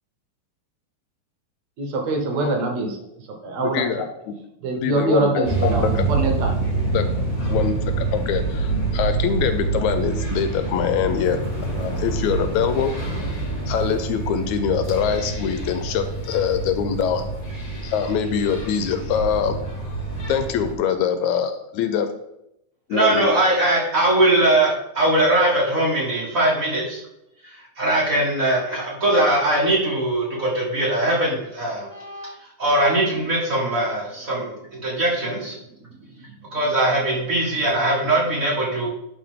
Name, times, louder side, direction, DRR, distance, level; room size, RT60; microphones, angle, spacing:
voice 1, 1.8-3.0 3.4-3.8 4.6-6.7, right 2 dB, 70° right, 3 dB, 2.1 m, -24 dB
voice 2, 3.6-4.4 4.8-6.1 6.9-7.1 7.5-11.4 11.8-12.9 13.7-17.2 17.8-19.5 20.3-22.1 22.9-23.3, left 7 dB, 80° left, 9 dB, 1.9 m, -24 dB
sound 1, 5.4-20.7, right 3 dB, 35° left, 1.5 m, -26 dB
voice 3, 22.9-27.0 27.4-32.3 32.6-35.6 36.5-38.9, right 1 dB, 35° right, -4 dB, 1.7 m, -21 dB
11.0 x 4.2 x 3.6 m, 0.82 s
omnidirectional pair, 3.4 m